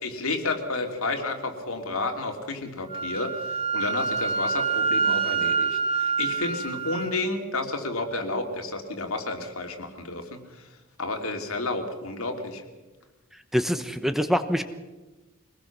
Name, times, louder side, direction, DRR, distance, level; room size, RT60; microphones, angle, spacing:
voice 1, 0.0-10.4 11.0-12.6, left 2 dB, 85° left, 4 dB, 3.0 m, -31 dB
Wind instrument woodwind instrument, 2.9-7.1, right 5 dB, 30° right, 2.4 m, -26 dB
voice 2, 13.5-14.6, equal, ahead, 9 dB, 1.0 m, -24 dB
24.5 x 19.5 x 6.1 m, 1.2 s
head